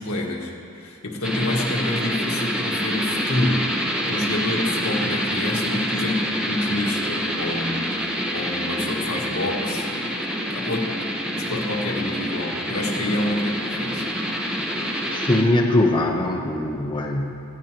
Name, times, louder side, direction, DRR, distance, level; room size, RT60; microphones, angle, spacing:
voice 1, 0.0-3.8 4.1-10.0 10.5-11.0 11.4-14.0, left 1 dB, 85° left, -1 dB, 1.7 m, -27 dB
sound 1, 1.2-15.4, equal, 5° right, 1.0 m, -27 dB
voice 2, 15.1-17.3, left 1 dB, 20° left, -1 dB, 0.9 m, -21 dB
20.0 x 14.0 x 3.0 m, 2.6 s
head